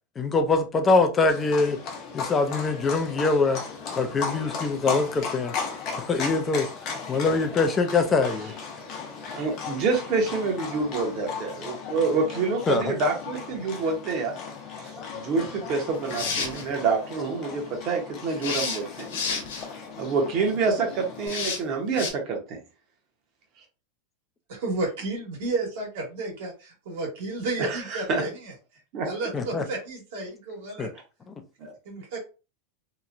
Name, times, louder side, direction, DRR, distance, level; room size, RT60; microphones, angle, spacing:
voice 1, 0.2-1.8 2.1-3.6 4.0-5.5 6.0-6.7 7.1-8.5 12.7-12.9 29.3-29.6 30.8-30.9, left 3 dB, 20° left, 0.5 m, -23 dB
Livestock farm animals working animals, 1.3-21.3, left 5 dB, 40° left, 0.8 m, -36 dB
voice 2, 9.3-14.3 14.8-19.1 20.0-22.6 27.6-28.2 28.9-29.1 31.6-31.7, right 4 dB, 45° right, 0.9 m, -27 dB
sound 1, 15.9-16.6 18.4-19.7 21.3-21.6 22.0-22.1, left 5 dB, 85° left, 0.9 m, -30 dB
voice 3, 24.5-28.5 29.0-30.9 31.8-32.2, right 3 dB, 70° right, 1.5 m, -32 dB
2.9 x 2.2 x 2.5 m
supercardioid pair, 140°, 0 cm